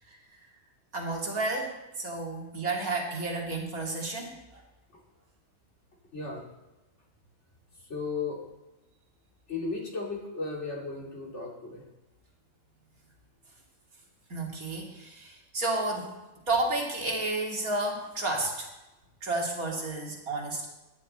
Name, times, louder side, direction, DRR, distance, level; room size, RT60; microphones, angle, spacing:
voice 1, 0.9-4.6 14.3-16.1 16.5-18.7 19.2-20.7, right 2 dB, 80° right, -1 dB, 3.0 m, -31 dB
voice 2, 6.1-6.5 7.9-8.4 9.5-11.8, left 4 dB, 55° left, -1 dB, 2.9 m, -35 dB
17.5 x 10.5 x 4.3 m, 1.0 s
omnidirectional pair, 1.5 m